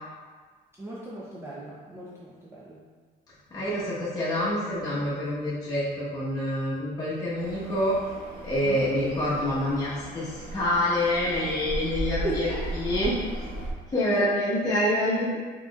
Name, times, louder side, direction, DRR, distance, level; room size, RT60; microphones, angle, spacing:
voice 1, 0.8-2.8 8.6-8.9 12.2-12.6, right 1 dB, 15° right, -7 dB, 0.6 m, -36 dB
voice 2, 3.5-8.0 8.4-13.2 13.9-15.4, left 1 dB, 20° left, -11 dB, 1.2 m, -27 dB
sound 1, 7.4-13.7, right 1 dB, 80° right, 1.2 m, -36 dB
4.1 x 4.0 x 2.4 m, 1.5 s
cardioid pair, 110°, 17 cm